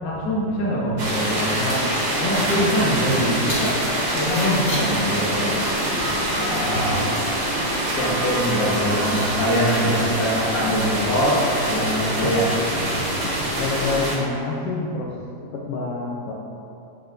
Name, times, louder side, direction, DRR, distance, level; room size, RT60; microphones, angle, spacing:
voice 1, 0.0-1.9 2.2-3.8 4.1-5.6 5.9-6.0 6.3-7.2 7.8-13.5, equal, 55° left, -6 dB, 0.9 m, -24 dB
sound 1, 1.0-14.2, right 1 dB, 60° right, 1.4 m, -25 dB
Keys jangling, 3.0-13.9, equal, 35° left, 1.3 m, -40 dB
sound 2, 5.5-12.6, right 3 dB, 75° right, 1.7 m, -35 dB
voice 2, 13.6-15.1 15.5-16.3, left 3 dB, 85° left, -4 dB, 1.3 m, -27 dB
7.1 x 5.7 x 2.5 m, 2.7 s
omnidirectional pair, 3.3 m